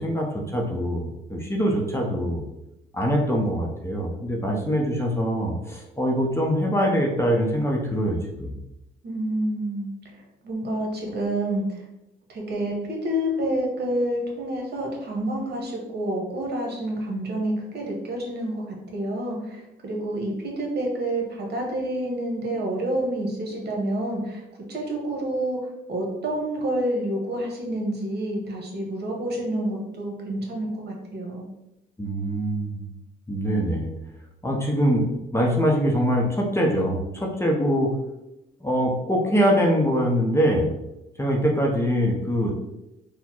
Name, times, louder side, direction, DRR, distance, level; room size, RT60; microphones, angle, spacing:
voice 1, 0.0-2.4 2.9-8.5 32.0-32.9 33.3-33.9 34.4-37.9 38.6-40.7 41.2-42.5, equal, 15° left, -1 dB, 0.8 m, -23 dB
voice 2, 9.0-11.9 12.3-24.4 24.7-31.5, right 1 dB, 55° right, 0 dB, 1.3 m, -28 dB
4.1 x 2.2 x 4.4 m, 0.91 s
cardioid pair, 90°, 20 cm